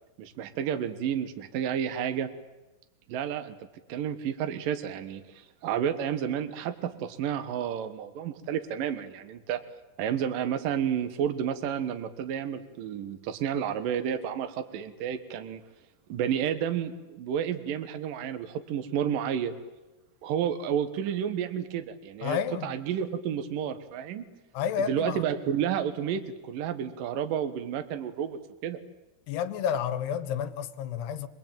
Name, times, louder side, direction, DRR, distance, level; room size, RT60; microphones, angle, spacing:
voice 1, 0.2-2.3 3.1-3.6 3.9-9.6 10.0-15.6 16.1-19.5 20.2-24.3 24.8-28.8, right 9 dB, 65° right, 2.8 m, -31 dB
voice 2, 22.2-22.7 24.5-25.2 29.3-31.3, left 8 dB, 80° left, 3.3 m, -30 dB
27.0 x 21.0 x 9.0 m
omnidirectional pair, 4.7 m